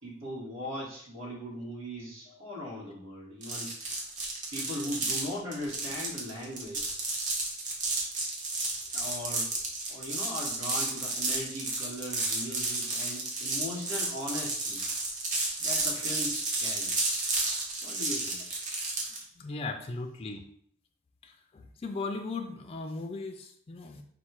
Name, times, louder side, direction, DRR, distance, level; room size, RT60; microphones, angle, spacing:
voice 1, 0.0-3.8 4.5-6.9 8.9-9.5 9.9-14.8 15.6-16.9 17.8-18.4, left 1 dB, 75° right, -6 dB, 1.3 m, -39 dB
sound 1, 3.4-19.2, right 2 dB, 40° right, 0.9 m, -32 dB
voice 2, 19.4-20.4 21.2-24.0, left 3 dB, 30° left, 4 dB, 0.4 m, -37 dB
4.2 x 2.2 x 4.6 m, 0.64 s
head